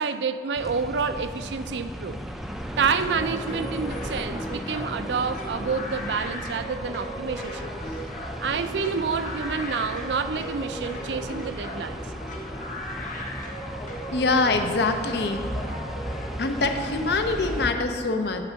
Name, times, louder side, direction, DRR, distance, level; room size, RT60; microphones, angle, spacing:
voice 1, 0.0-2.2 2.8-7.6 8.4-12.0, right 5 dB, 80° right, 10 dB, 0.4 m, -28 dB
sound 1, 0.5-17.7, equal, ahead, 0.3 m, -36 dB
sound 2, 3.0-16.9, equal, 45° left, 0.9 m, -37 dB
voice 2, 14.1-15.4 16.4-18.4, left 3 dB, 70° left, 6 dB, 0.7 m, -24 dB
7.9 x 4.5 x 6.9 m, 2.4 s
head